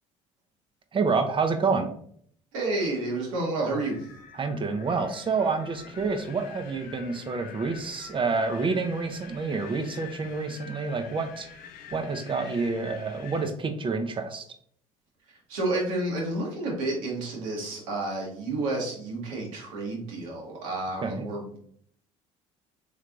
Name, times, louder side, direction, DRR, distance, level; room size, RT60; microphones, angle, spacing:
voice 1, 0.9-1.9 4.3-11.5 11.9-14.4 21.0-21.2, right 4 dB, 30° right, 6 dB, 0.6 m, -28 dB
voice 2, 2.5-4.0 15.3-21.6, right 2 dB, 85° right, -2 dB, 1.2 m, -30 dB
Wind, 3.6-13.5, left 7 dB, 60° left, 0.6 m, -46 dB
3.3 x 3.2 x 2.5 m, 0.62 s
hypercardioid pair, 70°, 17 cm